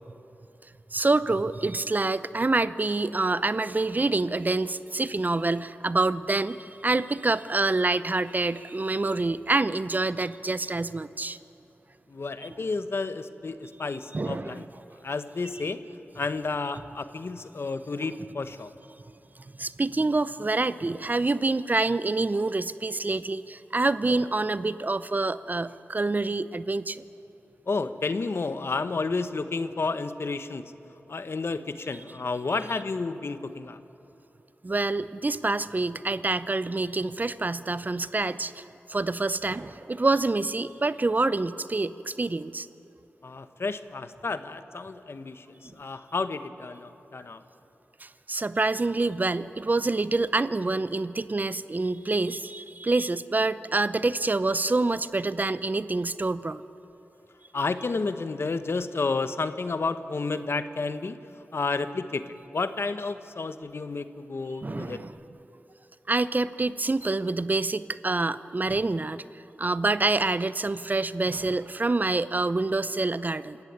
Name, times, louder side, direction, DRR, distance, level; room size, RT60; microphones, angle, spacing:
voice 1, 0.9-11.4 14.1-14.7 19.6-27.0 34.6-42.7 48.0-56.6 64.6-65.1 66.1-69.2 69.6-73.6, right 3 dB, 40° right, 15 dB, 0.7 m, -27 dB
voice 2, 12.1-14.6 15.0-15.8 16.1-18.7 27.7-30.7 31.1-33.8 43.2-47.4 57.5-61.2 61.5-65.0, left 3 dB, 60° left, 11 dB, 1.0 m, -31 dB
26.5 x 14.0 x 9.4 m, 2.9 s
cardioid pair, 45°, 5 cm